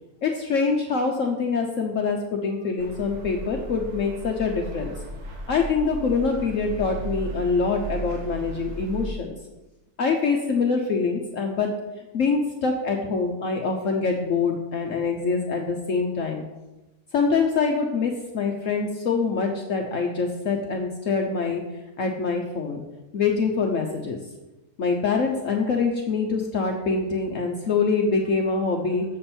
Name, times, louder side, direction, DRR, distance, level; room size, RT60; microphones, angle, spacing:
voice 1, 0.2-4.9 5.5-9.4 10.0-11.7 12.1-16.4 17.1-21.6 22.0-22.8 23.1-24.2 24.8-29.0, left 4 dB, 60° left, 2 dB, 1.1 m, -25 dB
sound 1, 2.8-9.1, right 1 dB, 80° right, 1.6 m, -35 dB
7.6 x 7.2 x 4.3 m, 1.1 s
omnidirectional pair, 1.6 m